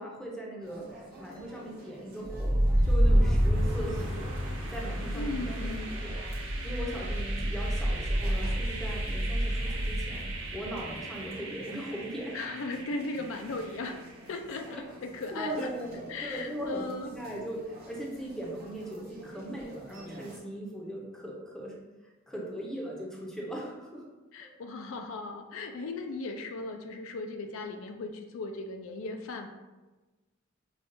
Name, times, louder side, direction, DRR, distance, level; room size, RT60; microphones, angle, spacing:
voice 1, 0.0-4.3 4.7-5.5 5.9-6.2 6.6-12.4 14.7-14.8 15.3-21.7 22.3-24.0 24.4-24.5, right 1 dB, 5° left, -3 dB, 0.6 m, -39 dB
sound 1, 0.6-20.4, right 1 dB, 50° right, 0.7 m, -50 dB
sound 2, 2.3-14.1, equal, 65° right, 1.0 m, -29 dB
voice 2, 5.1-5.9 12.3-14.0 14.3-15.7 16.1-17.1 24.3-29.5, left 3 dB, 70° left, 5 dB, 0.4 m, -37 dB
5.1 x 2.3 x 2.6 m, 1.2 s
head